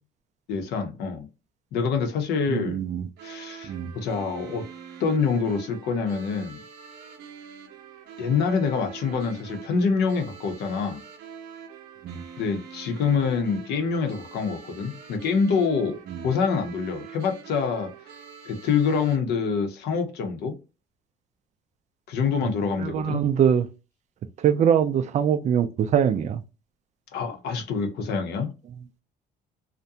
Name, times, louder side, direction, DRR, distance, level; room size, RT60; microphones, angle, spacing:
voice 1, 0.5-1.3 1.7-2.8 3.2-4.6 5.0-6.6 8.2-11.0 12.4-16.0 16.2-17.9 18.5-20.6 22.1-23.2 27.1-28.5, left 5 dB, 75° left, 0.8 m, -26 dB
voice 2, 2.5-3.1 3.6-3.9 12.0-12.2 16.1-16.2 22.4-22.5 22.8-23.7 24.4-26.4, right 8 dB, 45° right, 0.4 m, -23 dB
sound 1, 3.2-19.2, right 7 dB, 85° right, 0.7 m, -44 dB
2.5 x 2.2 x 2.7 m
cardioid pair, 110°, 17 cm